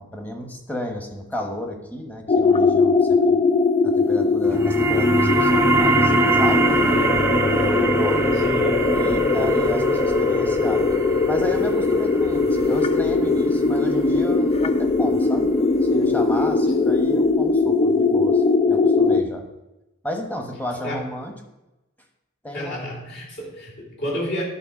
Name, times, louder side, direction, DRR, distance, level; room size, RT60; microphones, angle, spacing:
voice 1, 0.0-3.4 3.8-7.0 7.6-8.3 8.9-10.9 11.3-15.5 15.8-19.5 20.0-21.3 22.4-22.8, left 1 dB, 10° left, 3 dB, 1.1 m, -32 dB
sound 1, 2.3-19.2, left 3 dB, 30° left, 0.3 m, -20 dB
sound 2, 4.4-15.5, right 2 dB, 10° right, 0.6 m, -24 dB
voice 2, 8.4-8.8 20.8-21.0 22.5-24.4, equal, 55° left, -4 dB, 2.9 m, -30 dB
10.0 x 4.4 x 6.0 m, 0.99 s
head